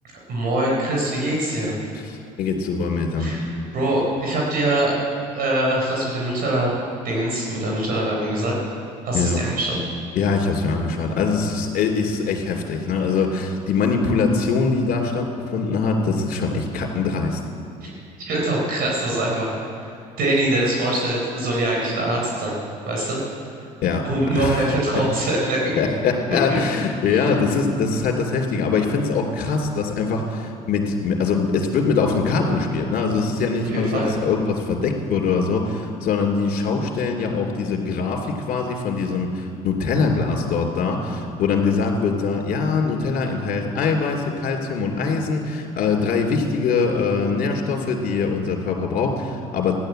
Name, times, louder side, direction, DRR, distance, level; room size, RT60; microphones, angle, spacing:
voice 1, 0.3-1.9 3.2-3.4 3.7-5.0 5.3-6.7 7.0-8.5 9.0-9.8 18.2-19.5 19.8-19.9 20.2-22.6 22.9-23.2 24.0-25.6 27.1-27.3 33.6-34.1, right 1 dB, 65° right, -3 dB, 4.2 m, -23 dB
voice 2, 1.9-3.3 9.1-9.4 10.1-17.4 23.8-24.1 24.3-24.7 25.8-49.8, left 4 dB, 60° left, 2 dB, 2.9 m, -23 dB
14.5 x 10.5 x 7.8 m, 2.4 s
supercardioid pair, 75°, 17 cm